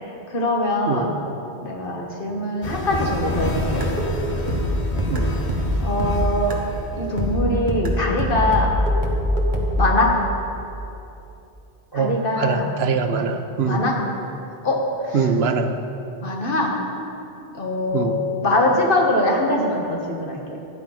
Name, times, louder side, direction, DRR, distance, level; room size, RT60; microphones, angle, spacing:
voice 1, 0.3-1.1 1.6-3.8 5.8-6.5 7.0-8.7 9.8-10.1 11.9-12.7 13.1-13.2 13.7-13.9 14.6-15.3 16.2-16.8 17.5-18.1 18.4-20.4, left 1 dB, 55° left, 0 dB, 1.7 m, -22 dB
sound 1, 2.6-7.4, left 1 dB, 40° left, 1.0 m, -28 dB
sound 2, 3.6-6.8 7.2-9.8, equal, 50° right, 1.5 m, -23 dB
voice 2, 11.9-13.8 15.1-15.7 17.9-18.2, right 5 dB, 75° right, 7 dB, 1.0 m, -23 dB
12.0 x 9.2 x 5.7 m, 2.8 s
omnidirectional pair, 1.1 m